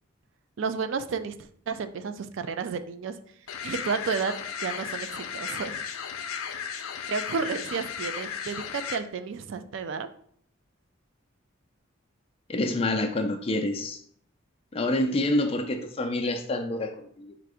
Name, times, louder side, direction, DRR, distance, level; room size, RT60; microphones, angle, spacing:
voice 1, 0.6-1.4 1.7-3.1 3.6-4.3 4.6-5.8 7.1-10.1, right 5 dB, 60° right, 10 dB, 0.3 m, -31 dB
sound 1, 3.5-9.0, left 7 dB, 85° left, 0.5 m, -35 dB
voice 2, 12.5-14.0 14.7-17.3, left 1 dB, 25° left, 5 dB, 0.4 m, -27 dB
4.4 x 2.5 x 4.8 m, 0.62 s
head